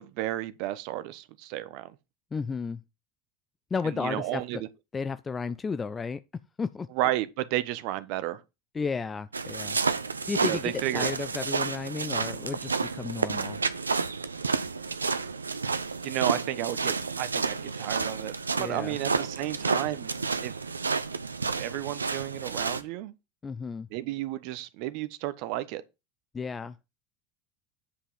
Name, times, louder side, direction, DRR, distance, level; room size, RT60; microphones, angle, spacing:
voice 1, 0.0-1.9 3.9-4.7 7.0-8.4 10.5-11.1 16.0-18.3 18.6-20.5 21.6-23.1 23.9-25.8, right 15 dB, 55° right, 1.0 m, -32 dB
voice 2, 2.3-2.8 3.7-4.6 4.9-6.9 8.7-9.8 10.1-13.6 18.6-19.0 23.4-23.9 26.3-26.8, left 5 dB, 25° left, 0.7 m, -33 dB
sound 1, 9.3-22.8, right 4 dB, 85° right, 0.7 m, -30 dB
10.0 x 5.7 x 5.5 m
figure-of-eight pair, 75°, 0 cm